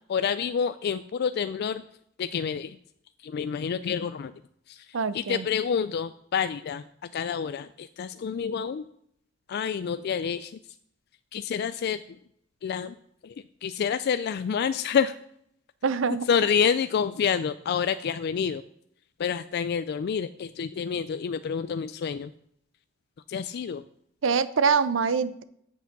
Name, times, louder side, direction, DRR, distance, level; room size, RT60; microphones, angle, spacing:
voice 1, 0.1-1.8 2.2-2.8 3.2-4.3 4.7-4.8 5.1-6.8 7.1-8.8 9.5-10.5 11.3-12.0 12.6-12.9 13.2-13.3 13.6-15.1 16.3-18.6 19.2-22.3 23.3-23.8, left 7 dB, 55° left, 11 dB, 0.3 m, -28 dB
voice 2, 4.9-5.5 15.8-16.3 24.2-25.4, right 5 dB, 70° right, 15 dB, 0.5 m, -24 dB
8.2 x 6.9 x 6.0 m, 0.70 s
head